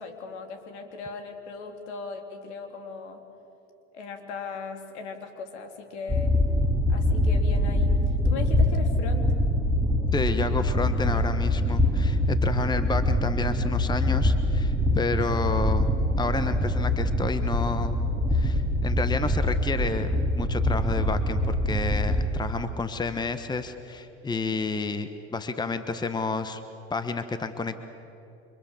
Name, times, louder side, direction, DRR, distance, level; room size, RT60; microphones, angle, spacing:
voice 1, 0.0-3.2 3.9-6.4 6.9-7.9 8.2-9.3, left 4 dB, 70° left, 5 dB, 3.5 m, -38 dB
sound 1, 6.1-22.3, left 1 dB, 10° right, 2.5 m, -24 dB
voice 2, 10.1-15.9 16.2-18.0 18.3-26.6 26.9-27.8, left 3 dB, 10° left, 10 dB, 1.3 m, -30 dB
29.0 x 25.0 x 7.4 m, 3.0 s
hypercardioid pair, 90°, 36 cm